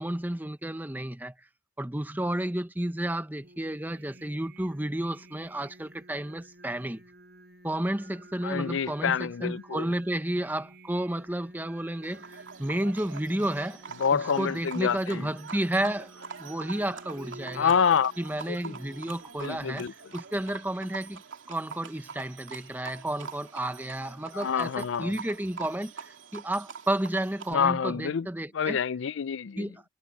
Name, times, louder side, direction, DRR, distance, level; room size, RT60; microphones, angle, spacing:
voice 1, 0.0-1.5 1.8-7.0 7.6-13.8 14.1-17.7 18.2-19.9 20.1-21.2 21.5-28.8 29.6-29.8, right 1 dB, 10° right, 0.8 m, -32 dB
Singing, 3.4-19.7, right 1 dB, 50° right, 5.6 m, -52 dB
voice 2, 8.4-9.9 14.0-15.3 17.5-18.1 18.5-18.7 19.4-19.9 24.3-25.1 27.5-28.3 28.5-29.7, left 7 dB, 70° left, 0.4 m, -27 dB
Livestock farm animals working animals, 12.0-27.5, right 5 dB, 75° right, 2.7 m, -45 dB
head